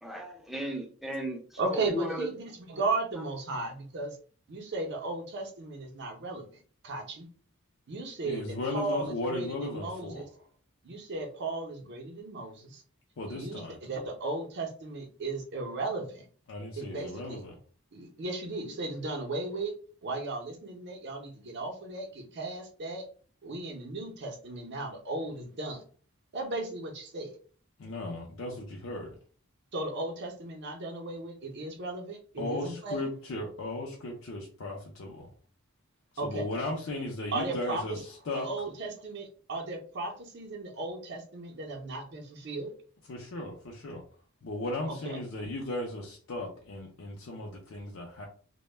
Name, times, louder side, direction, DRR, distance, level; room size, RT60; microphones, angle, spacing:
voice 1, 0.0-2.3, equal, ahead, 1 dB, 0.4 m, -35 dB
voice 2, 1.6-4.2 4.5-6.4 6.8-7.3 7.9-10.3 10.8-12.8 13.3-16.3 16.8-17.4 17.9-19.7 20.0-23.1 23.4-25.8 26.3-27.4 29.7-33.0 36.2-36.5 37.3-38.0 38.4-42.7 44.9-45.2, right 2 dB, 55° right, 3 dB, 0.6 m, -36 dB
voice 3, 8.2-10.2 13.2-13.8 16.5-17.6 27.8-29.1 32.4-35.3 36.2-38.5 43.1-44.0 44.4-48.2, left 2 dB, 65° left, -1 dB, 0.5 m, -36 dB
2.1 x 2.1 x 3.1 m, 0.43 s
head